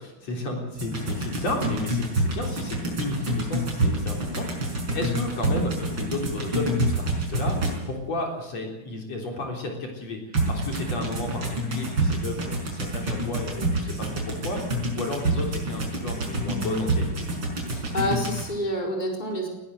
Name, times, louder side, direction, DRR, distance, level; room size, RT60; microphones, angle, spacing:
voice 1, 0.0-10.2 10.5-17.3, left 2 dB, 60° left, 1 dB, 4.8 m, -33 dB
sound 1, 0.8-8.0 10.3-18.4, right 1 dB, 40° right, 6.1 m, -27 dB
voice 2, 17.6-19.5, left 1 dB, 15° left, 0 dB, 4.4 m, -28 dB
20.0 x 18.5 x 7.7 m, 1.1 s
omnidirectional pair, 3.4 m